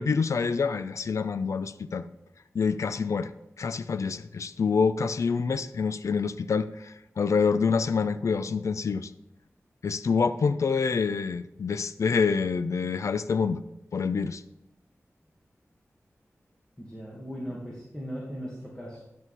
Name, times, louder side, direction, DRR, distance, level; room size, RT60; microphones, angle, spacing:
voice 1, 0.0-2.1 2.5-3.3 3.6-9.1 9.8-13.6 13.9-14.4, left 5 dB, 85° left, 13 dB, 0.4 m, -27 dB
voice 2, 16.8-19.0, equal, 15° left, -4 dB, 2.1 m, -38 dB
11.0 x 6.4 x 4.2 m, 0.90 s
wide cardioid pair, 80°, 5 cm